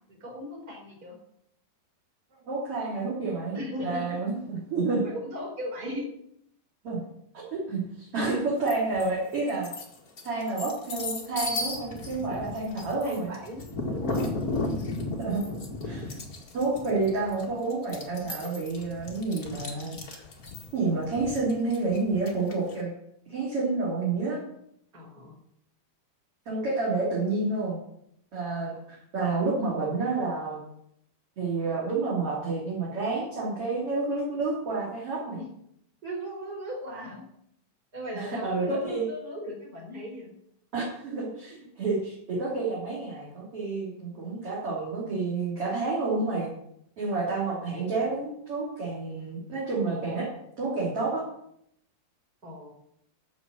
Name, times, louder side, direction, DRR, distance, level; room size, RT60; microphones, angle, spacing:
voice 1, 0.1-1.2 3.5-4.2 5.0-6.0 13.0-13.6 13.9-14.3 24.9-25.3 28.7-28.8 35.3-35.5 36.0-37.2 37.9-40.3 52.4-52.7, equal, 20° right, -1 dB, 4.6 m, -37 dB
voice 2, 2.5-3.5 3.8-5.0 6.8-7.0 7.3-9.7 10.2-13.3 15.2-15.5 15.8-16.1 16.5-20.2 20.7-22.9 23.3-24.4 26.5-27.8 28.3-28.7 29.1-30.6 31.4-35.4 38.1-39.1 40.7-46.5 47.0-50.3 50.6-51.2, right 3 dB, 35° right, -5 dB, 3.6 m, -29 dB
sound 1, 8.7-9.1 9.5-22.7, left 2 dB, 50° left, 1.0 m, -35 dB
13.5 x 6.1 x 7.8 m, 0.73 s
omnidirectional pair, 4.7 m